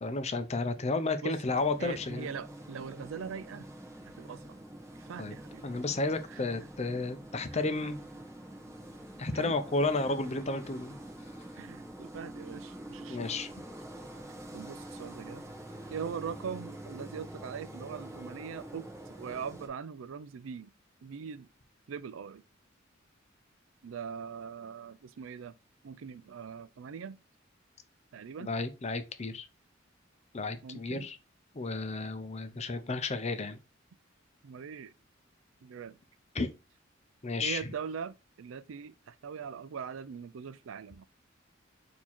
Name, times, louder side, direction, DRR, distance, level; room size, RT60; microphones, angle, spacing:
voice 1, 0.0-2.3 5.2-5.3 5.6-8.0 9.2-11.0 13.1-13.5 28.4-29.5 30.3-31.2 31.5-33.6 36.3-36.5 37.2-37.6, left 3 dB, 35° left, 0.6 m, -32 dB
sound 1, 1.4-19.7, right 1 dB, 15° right, 1.0 m, -46 dB
voice 2, 1.8-3.7 4.2-4.6 5.0-5.6 6.3-6.5 7.5-7.6 9.3-9.5 11.5-13.3 14.5-15.4 15.9-20.7 21.0-21.5 21.9-22.4 23.8-25.5 25.8-27.2 28.1-28.5 30.6-31.0 34.4-34.9 35.6-36.0 37.4-41.0, right 6 dB, 90° right, 0.4 m, -41 dB
4.5 x 2.8 x 4.2 m
head